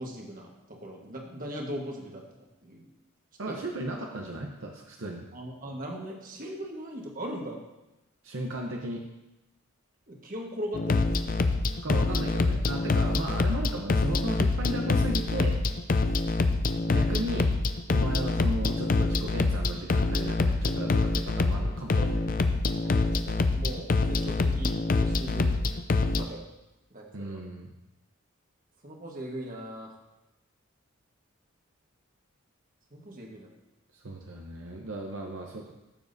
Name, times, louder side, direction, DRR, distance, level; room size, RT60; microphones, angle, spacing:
voice 1, 0.0-2.9 3.5-3.8 5.3-7.6 10.1-11.5 22.0-22.1 22.7-25.5 26.2-26.4 26.9-27.4 28.8-29.9 32.9-33.5, equal, 40° right, 0 dB, 1.5 m, -39 dB
voice 2, 3.4-5.2 8.2-9.0 11.8-15.6 16.9-17.6 17.9-22.2 27.1-27.7 33.9-35.7, right 1 dB, 70° right, 1 dB, 0.9 m, -35 dB
sound 1, 10.7-26.2, left 3 dB, 40° left, 0.5 m, -25 dB
14.0 x 7.3 x 2.7 m, 0.96 s
head